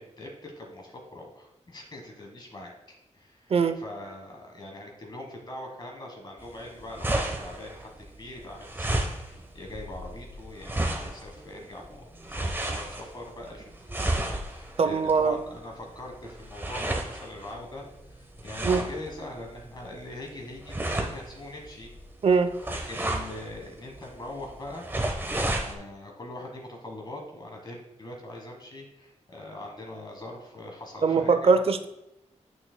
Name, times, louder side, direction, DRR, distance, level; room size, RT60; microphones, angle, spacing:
voice 1, 0.0-2.7 3.1-21.9 22.7-24.9 25.6-31.6, left 1 dB, 35° left, 1 dB, 1.3 m, -42 dB
sound 1, 6.4-25.7, right 1 dB, 15° right, 1.0 m, -33 dB
voice 2, 14.8-15.4 18.6-18.8 22.2-22.5 31.0-31.9, right 5 dB, 50° right, 10 dB, 0.5 m, -22 dB
8.9 x 6.4 x 2.2 m, 0.89 s
wide cardioid pair, 110°, 12 cm